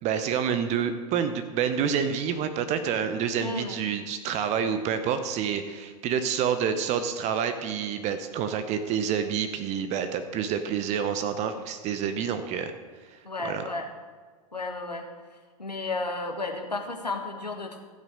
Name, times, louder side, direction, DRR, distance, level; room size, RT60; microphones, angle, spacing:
voice 1, 0.0-12.7 13.4-13.6, right 7 dB, 35° right, 9 dB, 0.8 m, -28 dB
voice 2, 3.4-3.8 13.2-13.9 14.5-15.1 15.6-17.8, left 3 dB, 90° left, 3 dB, 1.5 m, -33 dB
15.0 x 6.1 x 6.4 m, 1.5 s
figure-of-eight pair, 95°, 20 cm